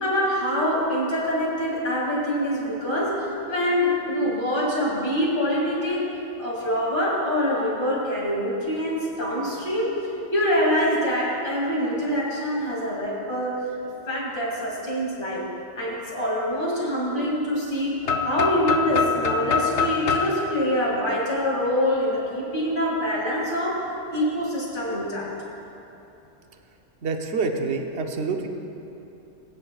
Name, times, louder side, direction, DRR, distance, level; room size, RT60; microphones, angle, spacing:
voice 1, 0.0-6.1 6.4-10.0 10.3-13.6 14.0-15.5 15.8-25.3, equal, 45° left, -5 dB, 2.8 m, -25 dB
sound 1, 18.0-21.9, left 5 dB, 75° left, 0.9 m, -25 dB
voice 2, 27.0-28.5, right 4 dB, 65° right, 3 dB, 1.1 m, -27 dB
22.0 x 9.4 x 2.4 m, 2.9 s
omnidirectional pair, 1.2 m